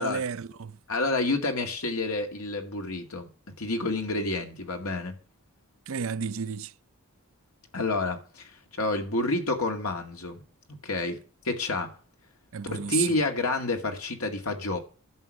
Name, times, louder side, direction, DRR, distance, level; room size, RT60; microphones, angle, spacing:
voice 1, 0.0-0.8 5.9-6.7 12.5-13.2, right 7 dB, 65° right, 0.5 m, -32 dB
voice 2, 0.9-3.3 3.6-5.2 7.7-10.4 10.8-11.2 11.4-11.9 12.6-14.8, left 2 dB, 80° left, 2.2 m, -29 dB
11.0 x 6.9 x 7.8 m
head